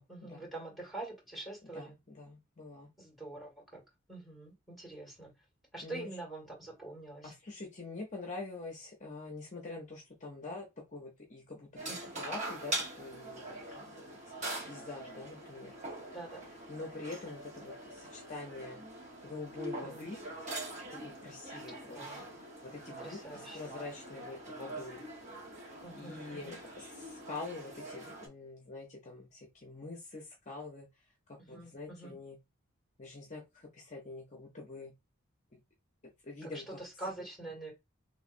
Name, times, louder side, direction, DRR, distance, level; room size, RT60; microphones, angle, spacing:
voice 1, 0.0-1.9 3.0-3.8 4.1-5.3 5.7-7.3 11.9-12.0 16.1-16.4 19.8-20.1 21.9-22.2 23.0-23.6 25.8-26.6 31.4-32.2 36.4-37.7, right 2 dB, ahead, -2 dB, 1.8 m, -45 dB
voice 2, 1.7-2.9 5.8-6.1 7.2-14.1 14.6-15.7 16.7-18.8 19.2-20.2 21.0-22.3 22.6-25.0 25.9-30.9 31.3-32.4 33.0-34.9 36.2-36.8, left 3 dB, 35° left, 0 dB, 0.7 m, -45 dB
sound 1, 11.8-28.3, right 2 dB, 35° right, 1.1 m, -43 dB
3.1 x 3.1 x 2.6 m, 0.23 s
head